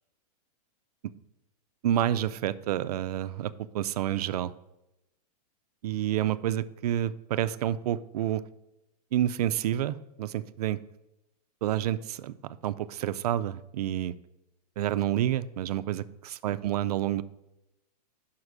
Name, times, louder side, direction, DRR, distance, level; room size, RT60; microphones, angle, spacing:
voice 1, 1.8-4.5 5.8-8.4 9.1-10.8 11.6-14.2 14.8-17.2, right 11 dB, 70° right, 15 dB, 0.4 m, -29 dB
5.8 x 4.7 x 6.4 m, 0.91 s
supercardioid pair, 170°, 21 cm